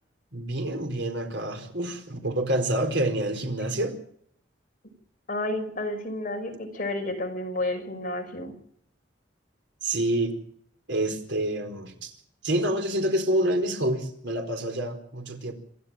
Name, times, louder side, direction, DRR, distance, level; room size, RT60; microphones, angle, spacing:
voice 1, 0.3-4.0 9.8-10.4 10.9-12.1 12.4-15.5, right 1 dB, 70° right, 5 dB, 4.5 m, -27 dB
voice 2, 5.3-8.5, left 1 dB, 45° left, 5 dB, 5.6 m, -31 dB
27.0 x 12.5 x 7.6 m, 0.65 s
head